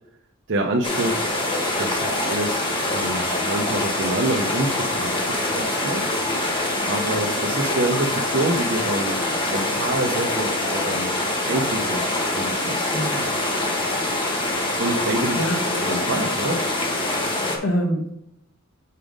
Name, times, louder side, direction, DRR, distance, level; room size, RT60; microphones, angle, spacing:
voice 1, 0.5-1.3 1.8-6.1 6.9-9.2 9.5-11.1 11.4-12.9 14.8-15.4 15.9-16.7 17.5-17.6, right 1 dB, 60° right, 1 dB, 0.7 m, -27 dB
sound 1, 0.8-17.6, left 1 dB, 25° left, 1.3 m, -24 dB
voice 2, 12.9-13.4 15.0-15.7 17.6-18.1, equal, 90° left, -1 dB, 1.1 m, -26 dB
5.6 x 5.1 x 5.0 m, 0.79 s
head